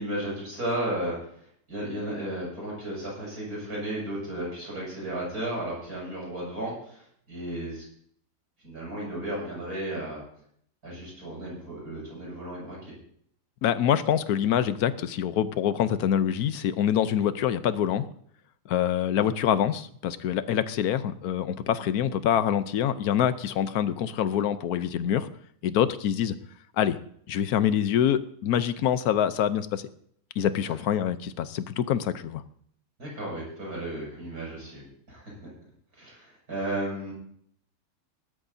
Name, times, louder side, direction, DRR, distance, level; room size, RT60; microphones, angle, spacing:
voice 1, 0.0-7.8 8.6-10.2 10.8-13.0 33.0-35.2 35.9-37.1, right 1 dB, 65° right, -4 dB, 7.0 m, -34 dB
voice 2, 13.6-18.0 18.7-25.3 25.6-26.4 26.8-27.0 27.3-29.8 30.4-32.4, left 9 dB, 70° left, 13 dB, 1.2 m, -25 dB
19.5 x 12.5 x 2.7 m, 0.64 s
omnidirectional pair, 1.7 m